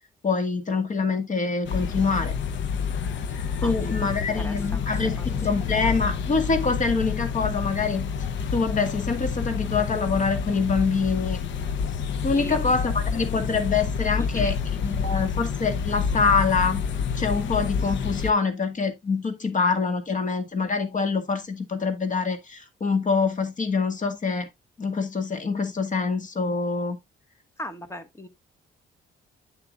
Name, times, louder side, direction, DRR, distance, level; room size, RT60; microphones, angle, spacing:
voice 1, 0.2-2.3 3.6-8.1 8.5-11.4 12.2-14.6 14.8-16.9 17.2-24.5 24.8-27.0, left 4 dB, 40° left, 1.8 m, -25 dB
sound 1, 1.6-18.3, left 6 dB, 70° left, 0.8 m, -28 dB
voice 2, 3.3-5.3 12.3-12.6 14.3-14.6 27.6-28.3, equal, 15° left, 1.3 m, -39 dB
8.4 x 6.8 x 2.5 m
cardioid pair, 90°, 20 cm